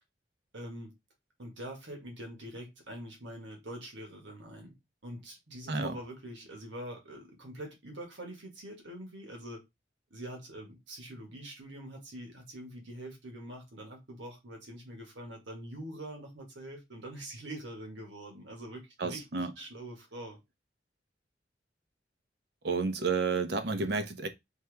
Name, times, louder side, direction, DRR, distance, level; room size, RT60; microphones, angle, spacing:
voice 1, 0.5-0.9 1.4-4.7 5.0-9.6 10.1-20.4, right 1 dB, 90° right, 1.6 m, -44 dB
voice 2, 19.0-19.5 22.6-24.3, right 4 dB, 60° right, 0.7 m, -31 dB
4.5 x 2.9 x 3.3 m
head